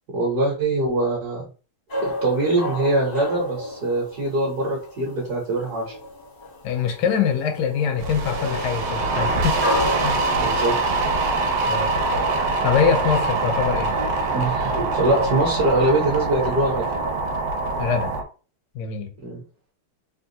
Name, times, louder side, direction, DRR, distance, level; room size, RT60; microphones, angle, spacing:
voice 1, 0.1-1.4 2.0-6.0 10.4-10.7 14.2-16.8 19.2-19.4, right 2 dB, 55° right, 1.2 m, -23 dB
sound 1, 1.9-18.2, left 1 dB, 50° left, 0.6 m, -34 dB
voice 2, 6.6-10.2 11.7-11.9 12.6-14.0 17.8-18.1 18.7-19.1, left 6 dB, 75° left, 0.9 m, -23 dB
sound 2, 8.0-18.2, right 3 dB, 80° right, 1.5 m, -24 dB
3.6 x 2.3 x 2.7 m
omnidirectional pair, 2.4 m